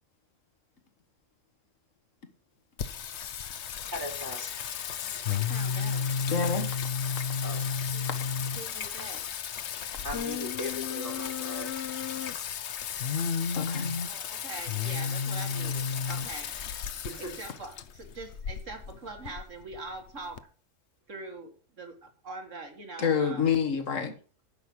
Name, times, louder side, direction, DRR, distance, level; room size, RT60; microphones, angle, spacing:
Singing, 2.8-20.4, left 7 dB, 65° left, 1.1 m, -33 dB
voice 1, 3.9-4.4 7.4-7.6 10.0-11.7 17.0-17.3, equal, 15° right, 4.9 m, -38 dB
voice 2, 5.3-6.0 7.9-8.1 8.6-9.2 14.0-16.5 17.2-20.5 21.1-21.5 21.8-23.5, right 3 dB, 75° right, 2.5 m, -43 dB
voice 3, 6.1-6.7 13.6-13.9 16.2-16.3 23.0-24.2, left 6 dB, 85° left, 1.8 m, -28 dB
10.5 x 6.2 x 7.2 m
omnidirectional pair, 1.3 m